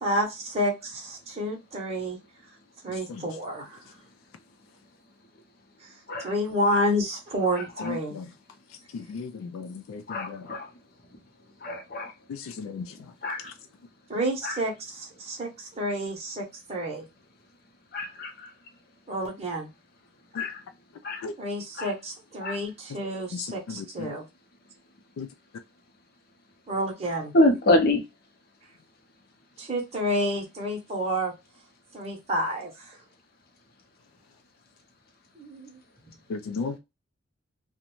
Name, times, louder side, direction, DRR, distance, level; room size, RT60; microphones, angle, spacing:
voice 1, 0.0-2.2 2.8-3.8 5.8-5.9 6.2-8.2 14.1-17.1 19.1-19.7 21.4-24.2 26.7-27.3 29.6-31.3 31.9-33.0 35.4-35.8, equal, 30° right, 0.7 m, -29 dB
voice 2, 9.5-10.0 10.3-10.4 12.6-12.9 21.2-21.3 25.2-25.3 36.3-36.8, left 4 dB, 80° left, 0.3 m, -33 dB
voice 3, 10.1-10.6 11.6-12.1 13.2-13.4 17.9-18.3 20.4-20.5 21.0-21.2 22.4-22.6 27.3-28.0, left 1 dB, 45° left, 0.6 m, -24 dB
2.5 x 2.1 x 2.9 m
head